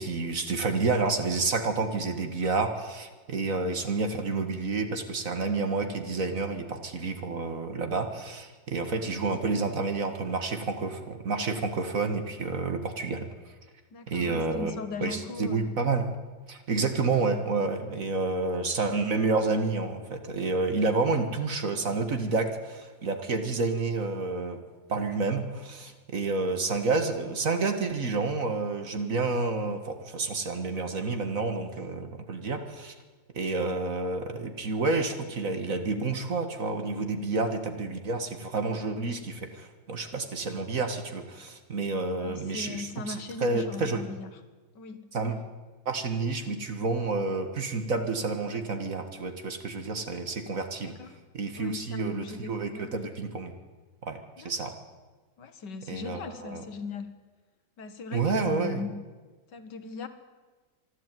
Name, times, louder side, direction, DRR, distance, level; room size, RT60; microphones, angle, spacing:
voice 1, 0.0-13.3 14.1-14.7 15.0-16.0 16.5-24.6 24.9-32.9 33.3-43.2 43.4-44.0 45.1-45.4 45.9-50.9 51.3-53.5 54.0-54.7 55.9-56.6 58.1-58.8, right 3 dB, 50° right, 7 dB, 2.0 m, -29 dB
voice 2, 8.7-9.0 13.9-15.7 17.8-18.0 23.5-23.6 42.2-44.3 44.8-45.4 50.8-51.1 51.6-52.9 54.4-54.7 55.4-57.1 57.8-58.9 59.5-60.1, left 3 dB, 70° left, 10 dB, 2.0 m, -39 dB
25.5 x 11.5 x 9.2 m, 1.3 s
omnidirectional pair, 1.9 m